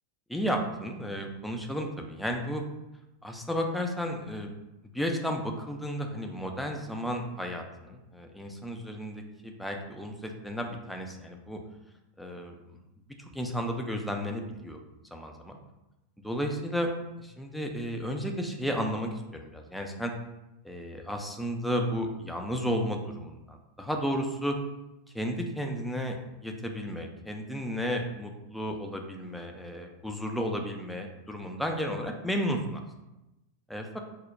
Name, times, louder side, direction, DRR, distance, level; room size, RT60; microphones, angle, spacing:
voice 1, 0.3-2.6 3.2-4.6 4.9-11.6 12.2-12.6 13.2-14.8 15.1-15.6 16.2-20.1 20.6-24.6 25.1-32.8 33.7-33.9, equal, ahead, 2 dB, 0.3 m, -33 dB
2.2 x 2.0 x 3.8 m, 0.97 s
figure-of-eight pair, 90°, 0 cm